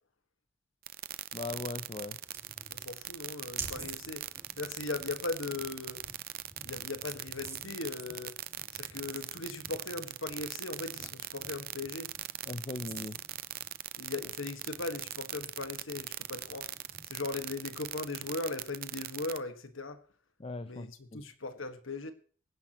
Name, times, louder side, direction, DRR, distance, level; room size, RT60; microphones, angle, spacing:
sound 1, 0.9-19.4, right 13 dB, 50° right, 0.6 m, -40 dB
voice 1, 1.3-2.2 12.5-13.2 20.4-21.2, left 2 dB, 30° left, 0.6 m, -39 dB
sound 2, 1.9-18.5, right 3 dB, 15° right, 2.2 m, -51 dB
voice 2, 2.7-6.0 6.6-8.4 8.7-12.1 14.0-16.7 17.0-20.0 20.6-22.1, left 3 dB, 85° left, 1.6 m, -39 dB
24.5 x 10.5 x 3.0 m
head